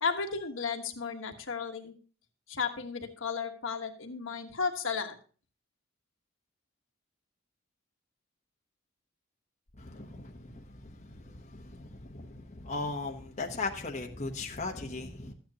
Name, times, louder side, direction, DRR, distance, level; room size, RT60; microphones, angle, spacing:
voice 1, 0.0-1.9 2.5-5.1, left 5 dB, 70° left, 1.3 m, -34 dB
voice 2, 9.8-15.3, left 3 dB, 35° left, 0.9 m, -38 dB
13.0 x 9.2 x 2.8 m
head